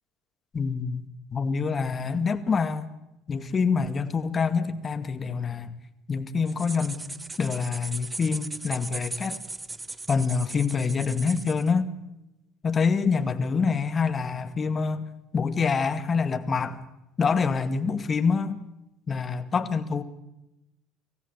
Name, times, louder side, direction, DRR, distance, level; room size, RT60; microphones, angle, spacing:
voice 1, 0.5-1.0 1.3-2.9 3.3-5.8 6.1-7.1 7.4-9.4 10.1-11.9 12.6-15.1 15.3-16.8 17.2-18.6 19.1-20.0, left 5 dB, 30° left, 2.1 m, -26 dB
sound 1, 6.5-11.7, right 3 dB, 15° right, 1.2 m, -38 dB
26.5 x 15.0 x 8.3 m
hypercardioid pair, 65°, 0 cm